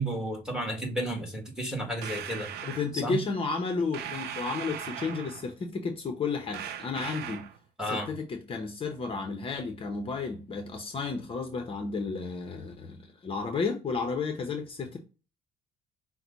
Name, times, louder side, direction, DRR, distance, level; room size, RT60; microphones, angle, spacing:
voice 1, 0.0-2.5 2.9-3.2 7.8-8.1, right 1 dB, 5° right, 1.6 m, -32 dB
sound 1, 2.0-2.9 3.9-5.5 6.5-7.6, right 9 dB, 70° right, 0.6 m, -38 dB
voice 2, 2.6-7.4 7.8-15.0, left 4 dB, 35° left, 0.8 m, -32 dB
5.9 x 2.2 x 3.9 m
cardioid pair, 110°, 17 cm